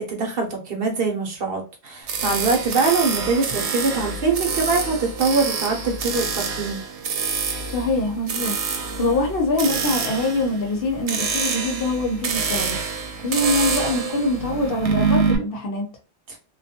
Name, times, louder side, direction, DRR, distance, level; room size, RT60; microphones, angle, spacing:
voice 1, 0.0-6.8 16.3-16.4, right 4 dB, 60° right, 0.8 m, -23 dB
sound 1, 2.1-15.4, right 5 dB, 90° right, 0.9 m, -26 dB
voice 2, 7.7-8.6 9.0-12.8 13.2-15.9, left 2 dB, 60° left, 0.9 m, -24 dB
2.3 x 2.2 x 2.8 m
omnidirectional pair, 1.1 m